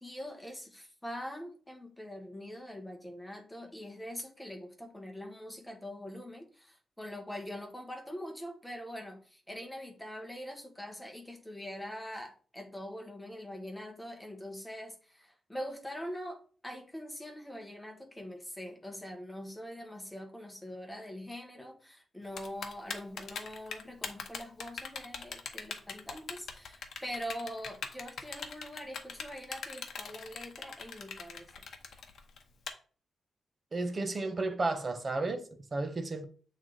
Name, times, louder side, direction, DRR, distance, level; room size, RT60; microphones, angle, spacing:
voice 1, 0.0-31.6, equal, 5° left, 1.1 m, -43 dB
Typing, 22.4-32.7, left 6 dB, 65° left, 0.8 m, -40 dB
voice 2, 33.7-36.2, right 3 dB, 30° right, 0.7 m, -33 dB
7.6 x 3.3 x 3.9 m
wide cardioid pair, 170°, 0 cm